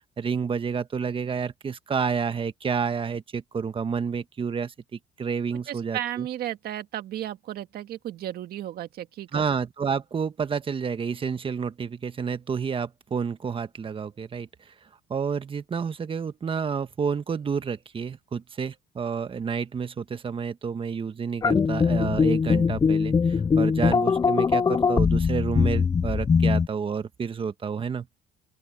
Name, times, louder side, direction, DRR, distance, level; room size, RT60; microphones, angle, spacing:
voice 1, 0.2-6.3 9.3-14.7 15.1-28.1, right 6 dB, 30° right, 1.3 m, -29 dB
voice 2, 5.7-9.4, right 12 dB, 65° right, 1.8 m, -34 dB
sound 1, 21.4-26.7, left 5 dB, 20° left, 0.4 m, -22 dB
open air
cardioid pair, 110°, 17 cm